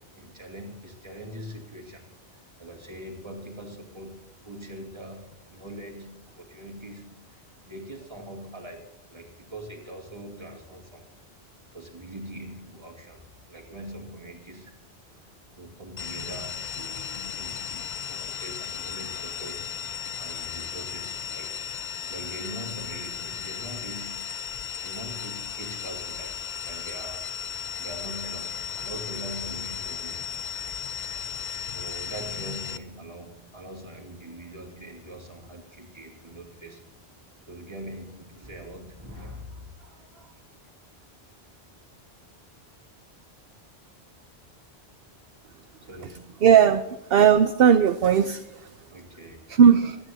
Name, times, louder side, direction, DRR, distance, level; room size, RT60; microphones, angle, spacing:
voice 1, 0.0-11.1 11.7-14.8 15.5-19.8 20.2-21.6 22.1-24.3 24.8-27.3 27.8-30.7 31.7-37.0 37.5-40.7 45.8-46.4 48.9-49.6, right 1 dB, 25° right, 0 dB, 2.6 m, -42 dB
sound 1, 16.0-32.8, left 7 dB, 50° left, 0.7 m, -35 dB
voice 2, 46.4-48.7 49.5-50.0, right 8 dB, 65° right, 9 dB, 0.8 m, -18 dB
26.0 x 9.7 x 2.7 m, 0.98 s
omnidirectional pair, 1.1 m